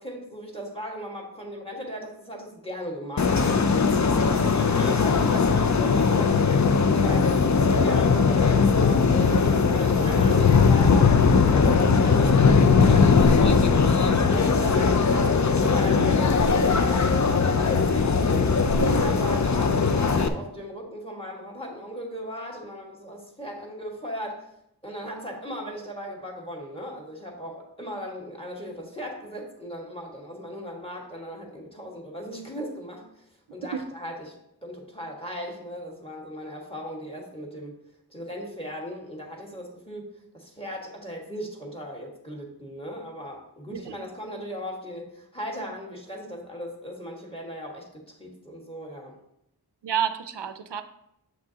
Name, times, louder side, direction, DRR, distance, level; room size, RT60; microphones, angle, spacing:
voice 1, 0.0-3.6 4.1-13.9 14.3-24.4 24.8-33.2 33.5-34.4 34.6-37.7 38.1-49.1, equal, 15° left, -1 dB, 1.7 m, -37 dB
sound 1, 3.2-20.3, left 5 dB, 45° left, 0.6 m, -20 dB
voice 2, 49.8-50.8, right 8 dB, 85° right, 10 dB, 0.6 m, -29 dB
7.7 x 6.0 x 2.8 m, 0.79 s
wide cardioid pair, 55°, 40 cm